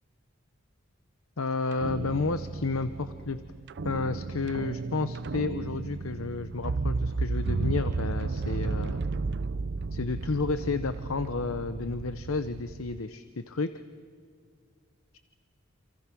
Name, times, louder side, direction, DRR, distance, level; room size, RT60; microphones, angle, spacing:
voice 1, 1.4-3.4 3.8-9.0 9.9-13.7, left 3 dB, 75° left, 11 dB, 0.8 m, -31 dB
sound 1, 1.7-13.0, right 3 dB, 55° right, 0.6 m, -33 dB
28.0 x 27.5 x 6.1 m, 2.1 s
head